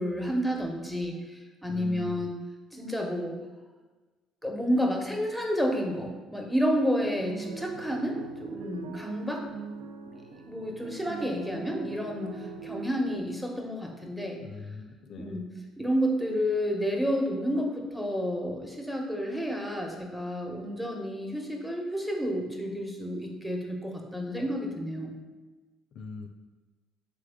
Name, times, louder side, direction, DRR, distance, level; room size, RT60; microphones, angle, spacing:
voice 1, 0.0-2.3 2.7-3.4 4.4-9.4 10.3-14.4 15.2-15.5 15.8-25.2, equal, 5° right, 1 dB, 0.9 m, -30 dB
voice 2, 1.7-2.2 14.4-15.4 25.9-26.3, left 4 dB, 65° left, 5 dB, 0.3 m, -41 dB
sound 1, 7.0-13.2, right 4 dB, 75° right, 0.3 m, -41 dB
3.6 x 3.4 x 3.6 m, 1.3 s
hypercardioid pair, 60°, 0 cm